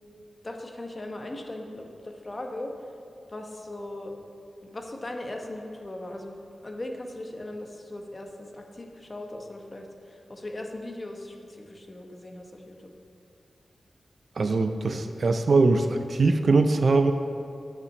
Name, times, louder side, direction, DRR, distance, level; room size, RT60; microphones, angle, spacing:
voice 1, 0.4-2.7 3.3-4.1 4.6-12.9, left 1 dB, 25° left, 2 dB, 0.9 m, -39 dB
voice 2, 14.4-17.1, right 3 dB, 50° right, 7 dB, 0.5 m, -22 dB
9.5 x 5.8 x 7.3 m, 2.6 s
wide cardioid pair, 175°, 0 cm